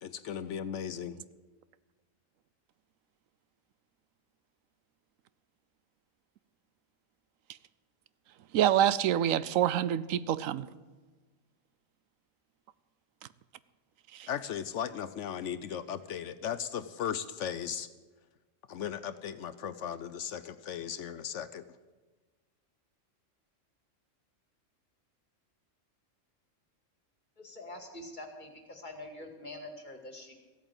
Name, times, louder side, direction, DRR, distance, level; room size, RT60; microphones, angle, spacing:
voice 1, 0.0-1.2 14.3-17.9 18.7-21.6, left 8 dB, 70° left, 13 dB, 0.9 m, -37 dB
voice 2, 8.5-10.7, right 11 dB, 90° right, 17 dB, 1.0 m, -26 dB
voice 3, 27.4-30.3, left 1 dB, 35° left, 4 dB, 2.2 m, -45 dB
15.5 x 8.8 x 7.9 m, 1.3 s
omnidirectional pair, 1.3 m